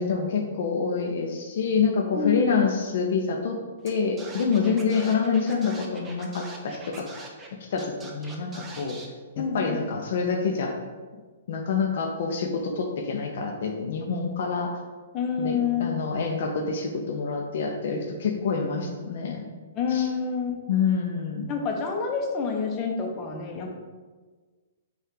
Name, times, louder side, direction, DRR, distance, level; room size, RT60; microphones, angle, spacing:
voice 1, 0.0-3.6 3.8-7.1 7.7-9.0 9.4-10.7 11.5-14.7 15.4-19.5 19.9-20.1 20.7-21.5, left 5 dB, 60° left, 3 dB, 0.5 m, -27 dB
voice 2, 2.1-2.7 9.4-9.8 15.1-15.9 19.8-20.6 21.5-23.7, left 6 dB, 30° left, 1 dB, 0.7 m, -28 dB
Scratching (performance technique), 3.9-4.0 4.2-7.5 7.8-9.1, right 3 dB, 15° right, 0.5 m, -43 dB
5.4 x 2.4 x 3.8 m, 1.4 s
hypercardioid pair, 145°, 0 cm